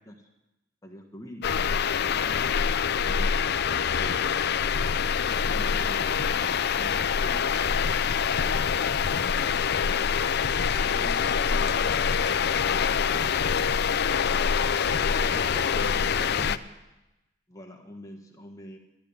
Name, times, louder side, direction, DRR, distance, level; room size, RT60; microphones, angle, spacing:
voice 1, 0.8-2.5 3.0-4.4 5.3-7.9 9.4-13.7 17.5-18.8, equal, 15° left, 2 dB, 1.3 m, -46 dB
sound 1, 1.4-16.6, left 6 dB, 55° left, 0.5 m, -25 dB
voice 2, 8.5-8.9 14.8-16.6, equal, 45° right, 0 dB, 2.9 m, -43 dB
12.5 x 11.0 x 8.8 m, 0.98 s
head